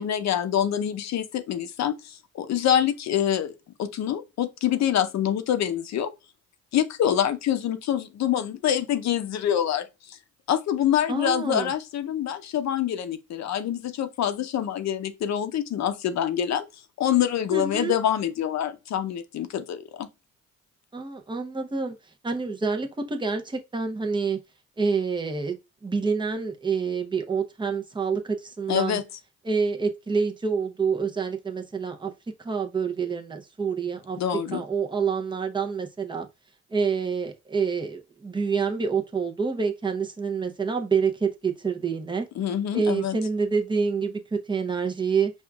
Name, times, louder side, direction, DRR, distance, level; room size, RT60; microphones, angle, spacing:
voice 1, 0.0-3.5 3.8-6.1 6.7-10.2 10.5-16.6 17.0-20.1 28.7-29.0 34.2-34.6 42.4-43.2, left 10 dB, 65° left, 0.7 m, -26 dB
voice 2, 11.1-11.7 17.5-17.9 20.9-22.0 22.2-24.4 24.8-25.6 25.8-29.0 29.4-32.1 32.4-34.2 34.5-36.3 36.7-42.3 42.7-45.3, right 5 dB, 15° right, 0.7 m, -27 dB
5.2 x 2.4 x 2.3 m
cardioid pair, 90°, 30 cm